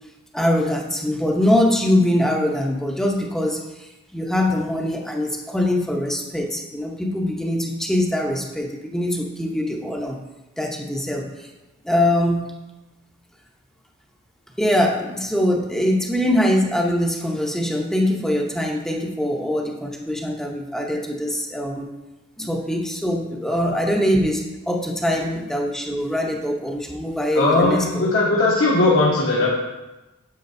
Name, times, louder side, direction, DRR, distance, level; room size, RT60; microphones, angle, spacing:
voice 1, 0.3-10.2 10.6-11.5 11.8-12.4 14.6-21.9 22.4-27.8, left 1 dB, ahead, 0 dB, 0.8 m, -23 dB
voice 2, 27.3-29.5, left 2 dB, 60° left, -6 dB, 1.3 m, -18 dB
9.5 x 7.6 x 2.6 m, 1.0 s
head